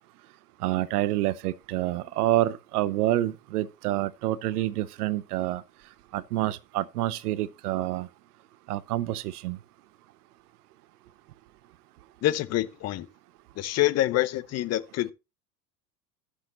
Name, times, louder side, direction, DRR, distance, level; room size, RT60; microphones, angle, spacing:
voice 1, 0.6-5.6 6.1-8.1 8.7-9.6, right 15 dB, 65° right, 0.8 m, -28 dB
voice 2, 12.2-13.1 13.6-15.1, left 15 dB, 30° left, 0.8 m, -26 dB
14.5 x 6.4 x 2.8 m
hypercardioid pair, 90°, 50 cm